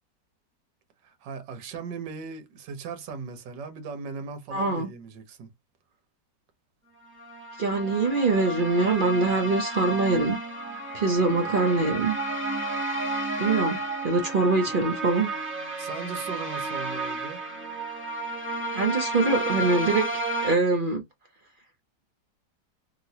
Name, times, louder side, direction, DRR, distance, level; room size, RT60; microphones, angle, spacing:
voice 1, 1.0-5.5 15.8-17.4, right 5 dB, 80° right, 1.5 m, -38 dB
voice 2, 4.5-4.9 7.6-10.4 10.9-12.2 13.4-13.8 14.0-15.3 18.7-20.1 20.4-21.0, right 3 dB, 60° right, 0.5 m, -23 dB
sound 1, 7.2-20.5, right 2 dB, 15° right, 0.5 m, -32 dB
3.0 x 2.9 x 2.7 m
omnidirectional pair, 1.9 m